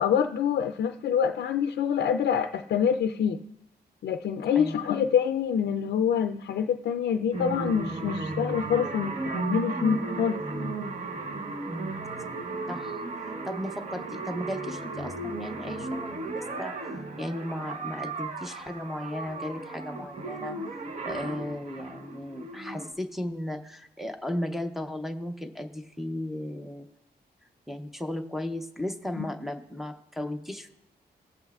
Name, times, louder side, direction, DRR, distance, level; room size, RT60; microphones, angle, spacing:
voice 1, 0.0-3.4 4.0-10.7 29.2-29.3, left 7 dB, 85° left, 8 dB, 0.4 m, -26 dB
sound 1, 7.3-22.9, right 3 dB, 45° right, 0.9 m, -35 dB
voice 2, 11.7-12.0 12.7-20.6 21.0-26.9 27.7-30.7, left 1 dB, ahead, 7 dB, 0.6 m, -35 dB
20.0 x 7.8 x 2.3 m, 0.85 s
wide cardioid pair, 160°, 17 cm